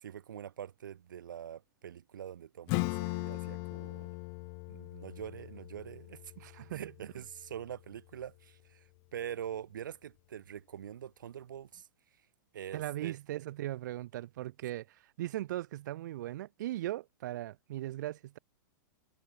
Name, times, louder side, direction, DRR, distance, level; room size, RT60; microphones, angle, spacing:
voice 1, 0.0-4.1 4.7-6.3 6.7-8.8 9.1-11.9 12.5-13.2, right 9 dB, 90° right, 2.7 m, -44 dB
Acoustic guitar / Strum, 2.7-7.9, left 40 dB or more, 50° left, 2.4 m, -39 dB
voice 2, 6.4-6.9 12.7-18.4, right 14 dB, 70° right, 6.4 m, -38 dB
hypercardioid pair, 130°, 10 cm